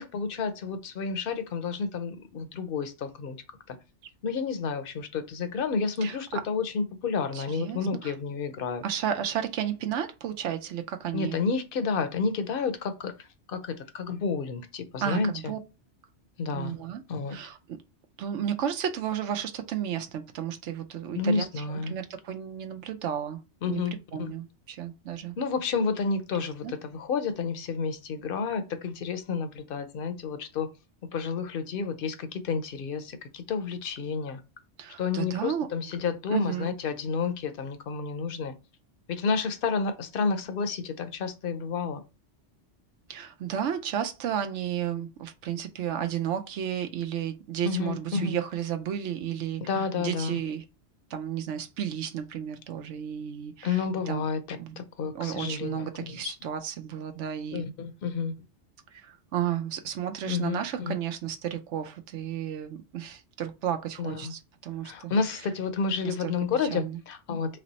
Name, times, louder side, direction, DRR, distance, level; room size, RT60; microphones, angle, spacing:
voice 1, 0.0-3.4 3.7-3.8 4.2-8.8 11.1-15.5 16.4-16.8 17.1-17.4 21.2-21.9 23.6-24.3 25.4-30.7 31.1-34.4 35.0-38.5 39.1-42.0 47.7-48.4 49.7-50.4 53.6-56.3 57.5-58.3 60.3-61.0 64.0-64.3 64.8-67.6, left 5 dB, 55° left, 0.8 m, -30 dB
voice 2, 6.0-6.4 7.3-8.1 8.8-11.4 15.0-15.6 16.5-17.0 17.3-17.8 18.2-23.4 23.7-23.8 24.1-25.3 26.6-26.7 34.8-35.7 36.3-36.7 43.1-49.6 50.0-50.6 51.1-54.2 54.6-54.8 55.1-57.6 58.9-65.1 66.0-66.3 66.7-67.0, right 9 dB, 80° right, 1.0 m, -33 dB
3.3 x 3.1 x 4.0 m
omnidirectional pair, 1.2 m